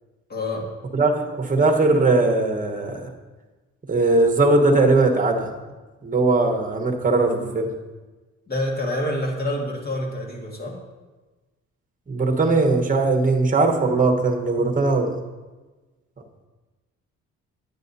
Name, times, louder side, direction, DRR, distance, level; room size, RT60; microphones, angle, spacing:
voice 1, 0.3-0.7 8.5-10.8, left 1 dB, 30° left, 1 dB, 1.7 m, -27 dB
voice 2, 0.9-3.0 3.9-5.5 6.0-7.7 12.1-15.1, right 3 dB, 25° right, 2 dB, 1.2 m, -19 dB
9.9 x 8.6 x 2.7 m, 1.2 s
cardioid pair, 90°, 30 cm